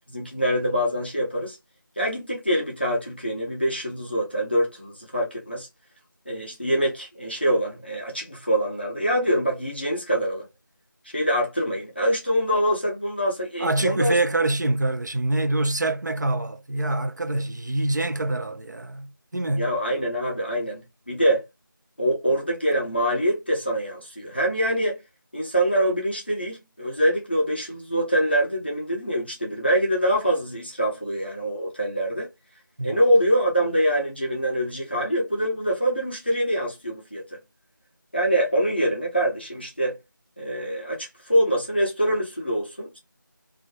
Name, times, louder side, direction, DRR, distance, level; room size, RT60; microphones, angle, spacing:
voice 1, 0.1-1.6 2.0-5.7 6.3-10.5 11.0-14.2 19.6-20.8 21.1-21.4 22.0-25.0 25.3-32.3 32.8-37.2 38.1-40.0 40.4-43.0, equal, 30° left, 0.6 m, -24 dB
voice 2, 13.6-19.7 32.8-33.0, right 2 dB, 60° right, 0.4 m, -25 dB
2.3 x 2.1 x 2.7 m
figure-of-eight pair, 175°, 11 cm